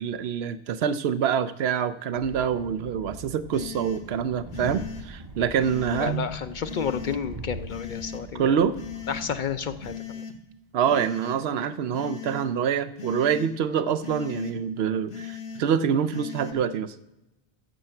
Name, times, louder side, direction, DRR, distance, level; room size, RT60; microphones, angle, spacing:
voice 1, 0.0-6.3 8.3-8.8 10.7-16.9, right 8 dB, 75° right, 12 dB, 0.8 m, -26 dB
Train, 2.2-10.0, right 2 dB, 30° right, 0.5 m, -43 dB
sound 1, 3.5-4.0 4.5-5.0 5.6-6.1 6.6-7.2 7.7-8.2 8.7-9.3 9.8-10.3 10.8-11.4 11.9-12.5 13.0-13.5 14.0-14.5 15.1-15.6 16.1-16.5, left 7 dB, 75° left, 1.3 m, -38 dB
voice 2, 6.0-8.6 9.1-10.2, left 7 dB, 60° left, 11 dB, 0.6 m, -31 dB
10.0 x 5.8 x 7.6 m, 0.93 s
omnidirectional pair, 1.1 m